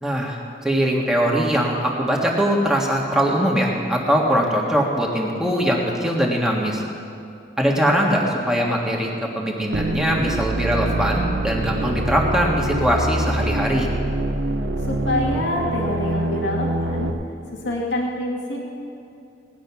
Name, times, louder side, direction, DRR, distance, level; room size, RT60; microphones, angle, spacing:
voice 1, 0.0-0.4 0.6-6.8 7.6-13.9, equal, 5° right, -2 dB, 1.7 m, -21 dB
sound 1, 9.7-17.1, right 1 dB, 85° right, 1.0 m, -25 dB
voice 2, 14.8-17.1 17.6-18.6, left 1 dB, 80° left, -2 dB, 2.1 m, -26 dB
18.0 x 10.5 x 5.9 m, 2.6 s
head